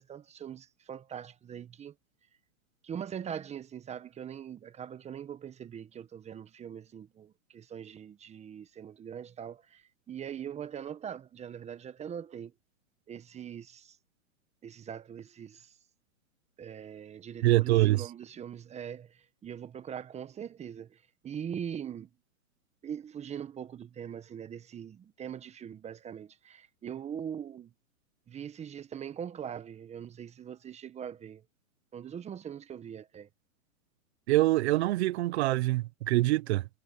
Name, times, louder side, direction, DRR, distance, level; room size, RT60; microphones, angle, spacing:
voice 1, 0.0-1.9 2.8-12.5 13.1-14.0 14.6-15.7 16.6-22.1 22.8-27.7 28.3-31.4 31.9-33.3, right 8 dB, 15° right, 1.4 m, -42 dB
voice 2, 17.4-18.0 34.3-36.7, right 17 dB, 50° right, 1.0 m, -25 dB
hypercardioid pair, 135°, 42 cm